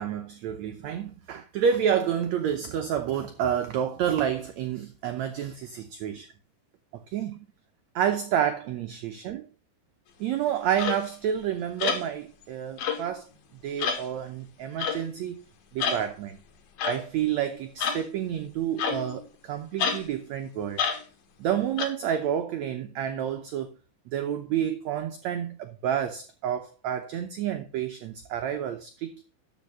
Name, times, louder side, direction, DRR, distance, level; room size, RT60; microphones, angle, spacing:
voice 1, 0.0-6.3 6.9-7.5 7.9-9.5 10.2-13.3 13.6-15.4 15.7-16.4 16.8-20.8 21.4-23.7 24.1-29.2, right 9 dB, 75° right, 1.7 m, -29 dB
sound 1, 10.8-11.0 11.8-12.1 12.8-13.1 13.8-14.0 14.8-15.1 15.8-16.0 16.8-17.0 17.8-18.1 18.8-19.2 19.8-20.0 20.8-21.0 21.8-21.9, left 6 dB, 80° left, 3.3 m, -28 dB
12.5 x 5.3 x 5.5 m
omnidirectional pair, 4.2 m